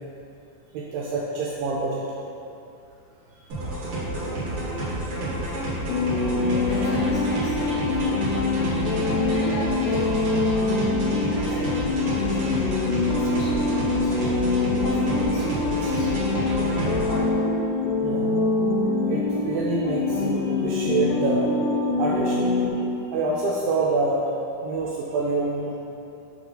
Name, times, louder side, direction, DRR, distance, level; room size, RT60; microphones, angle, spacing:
voice 1, 0.7-2.0 6.5-6.7 18.0-18.3 19.1-21.5 22.0-22.5 23.1-24.2 24.6-25.7, right 3 dB, 85° right, -4 dB, 2.1 m, -26 dB
sound 1, 3.5-17.2, right 1 dB, 60° right, 1.5 m, -30 dB
sound 2, 5.9-22.7, left 3 dB, 90° left, 1.9 m, -24 dB
voice 2, 6.6-8.1 9.3-10.9 11.3-14.3 14.8-16.3, equal, 70° left, -8 dB, 2.9 m, -39 dB
7.0 x 3.5 x 3.8 m, 2.7 s
omnidirectional pair, 4.5 m